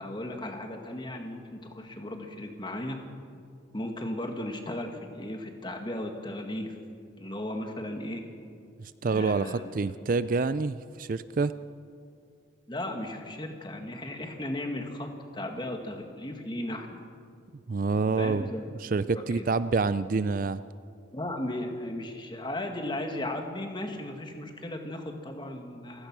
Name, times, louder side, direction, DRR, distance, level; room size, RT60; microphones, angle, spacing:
voice 1, 0.0-3.0 3.7-6.7 7.2-8.2 9.0-10.0 12.7-17.0 18.2-19.5 21.1-26.1, left 1 dB, 25° left, 4 dB, 1.9 m, -36 dB
voice 2, 8.8-11.5 17.7-18.5 18.8-20.6, right 4 dB, 45° right, 14 dB, 0.4 m, -27 dB
28.5 x 16.0 x 6.2 m, 2.3 s
head